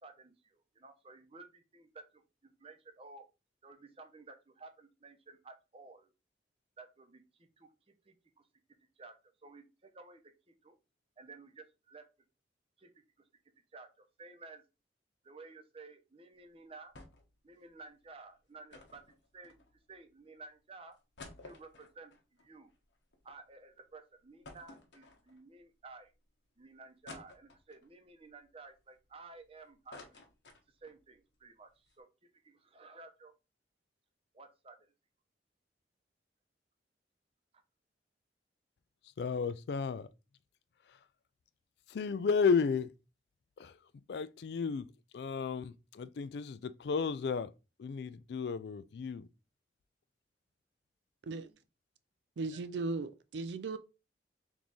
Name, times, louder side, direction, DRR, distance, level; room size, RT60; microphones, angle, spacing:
voice 1, 0.0-3.2 3.6-6.1 6.8-7.7 8.0-8.5 9.0-9.1 9.4-10.8 11.2-12.1 12.8-12.9 13.7-14.6 15.2-16.9 17.4-19.0 19.3-19.5 19.9-21.0 21.4-22.7 23.2-26.1 26.6-30.2 30.7-33.3 34.3-34.8, right 3 dB, 35° right, 0.7 m, -54 dB
sound 1, 16.9-17.4 17.6-17.7 18.7-20.0 20.5-20.6 20.9-23.4 23.7-23.8 24.4-25.6 26.1-26.2 27.1-27.9 28.4-29.4 29.7-31.0 31.4-31.5 31.7-31.9, left 2 dB, 85° left, 1.0 m, -53 dB
voice 2, 39.2-40.1 40.9-41.0 41.9-42.9 43.6-43.8 44.1-44.9 45.1-47.5 47.8-49.3, left 5 dB, 65° left, 0.3 m, -33 dB
voice 3, 52.4-53.8, right 3 dB, 80° right, 0.4 m, -37 dB
3.5 x 3.1 x 4.0 m
head